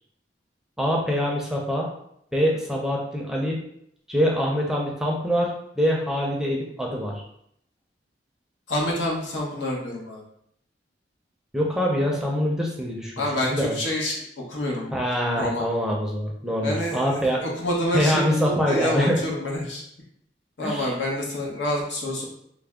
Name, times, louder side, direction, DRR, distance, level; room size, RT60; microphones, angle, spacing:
voice 1, 0.8-1.9 2.3-3.6 4.1-7.2 11.5-13.8 14.9-17.4 17.9-19.2 20.6-20.9, equal, 5° right, -2 dB, 0.5 m, -24 dB
voice 2, 8.7-10.2 13.2-14.1 14.5-14.9 15.4-15.7 16.6-19.8 20.6-22.2, left 1 dB, 85° left, -2 dB, 0.9 m, -27 dB
3.4 x 2.1 x 3.5 m, 0.72 s
head